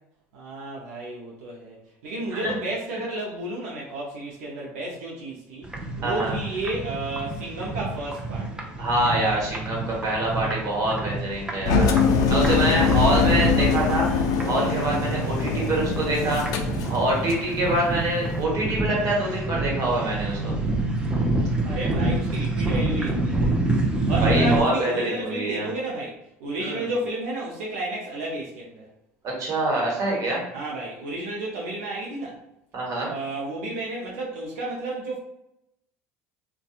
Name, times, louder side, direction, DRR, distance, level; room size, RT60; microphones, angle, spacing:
voice 1, 0.3-1.8 2.0-5.7 6.0-8.8 21.6-23.5 24.1-26.2 26.4-28.9 30.5-32.4 33.1-35.2, right 2 dB, 85° right, -4 dB, 0.5 m, -32 dB
sound 1, 5.6-24.6, right 2 dB, 10° right, 0.5 m, -28 dB
voice 2, 6.0-6.3 8.8-20.5 24.2-25.7 26.6-26.9 29.2-30.4 32.7-33.1, right 1 dB, 45° right, -2 dB, 1.2 m, -25 dB
Engine, 11.6-17.5, left 5 dB, 55° left, 0.4 m, -23 dB
2.6 x 2.2 x 2.4 m, 0.83 s
hypercardioid pair, 85°, 7 cm